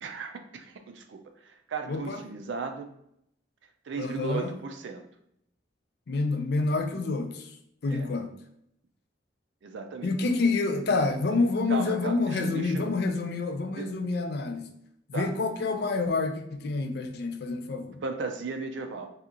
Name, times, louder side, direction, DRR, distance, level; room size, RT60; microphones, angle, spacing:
voice 1, 0.0-2.9 3.9-5.0 7.9-8.1 9.6-10.4 11.7-12.9 13.7-13.9 15.1-15.3 18.0-19.1, right 4 dB, 70° right, 6 dB, 0.4 m, -36 dB
voice 2, 1.9-2.2 4.0-4.5 6.1-7.6 7.8-8.3 10.0-14.7 15.1-18.0, left 3 dB, 55° left, 5 dB, 0.4 m, -28 dB
2.8 x 2.4 x 3.7 m, 0.75 s
head